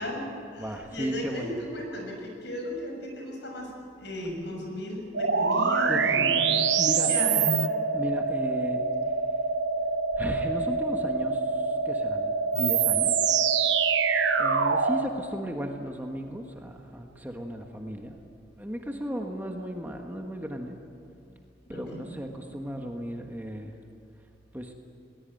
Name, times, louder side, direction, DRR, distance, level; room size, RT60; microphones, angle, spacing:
voice 1, 0.0-3.7 4.0-6.6 7.0-7.6 21.7-22.0, left 1 dB, 65° left, 1 dB, 6.6 m, -35 dB
voice 2, 0.6-1.5 5.9-7.1 7.9-8.8 10.1-13.1 14.4-18.2 18.6-20.8 21.7-23.7 24.5-24.7, equal, 10° right, 2 dB, 1.5 m, -35 dB
sound 1, 5.1-15.1, right 5 dB, 75° right, 1.1 m, -25 dB
21.5 x 20.0 x 9.1 m, 2.4 s
head